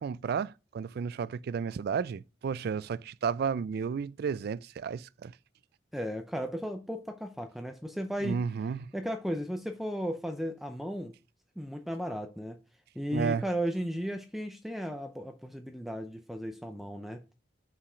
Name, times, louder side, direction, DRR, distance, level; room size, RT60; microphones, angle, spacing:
voice 1, 0.0-5.3 8.2-8.9 13.1-13.4, right 6 dB, 55° right, 0.3 m, -32 dB
voice 2, 5.9-8.4 8.9-11.2 11.6-12.6 12.9-17.3, equal, ahead, 0.5 m, -35 dB
5.7 x 4.9 x 4.9 m
head